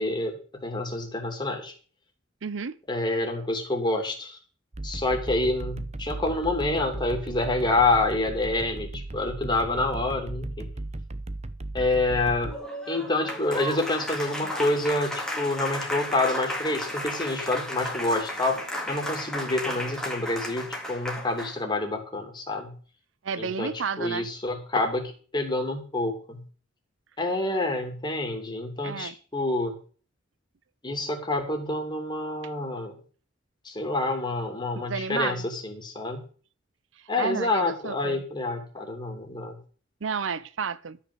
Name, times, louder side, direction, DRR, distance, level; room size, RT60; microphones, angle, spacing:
voice 1, 0.0-1.7 2.9-4.4 4.8-10.7 11.7-12.5 12.9-18.6 18.9-22.7 23.4-23.7 24.0-26.4 27.2-29.8 30.8-32.9 33.6-36.2 37.1-39.6, left 2 dB, 25° left, 2.7 m, -27 dB
voice 2, 2.4-2.8 23.2-24.3 28.8-29.1 34.8-35.5 37.0-38.2 40.0-41.0, right 5 dB, 70° right, 0.6 m, -31 dB
sound 1, 4.7-12.5, right 2 dB, 35° right, 0.8 m, -36 dB
Applause, 12.4-21.6, equal, 5° left, 2.1 m, -34 dB
12.5 x 5.9 x 7.9 m
head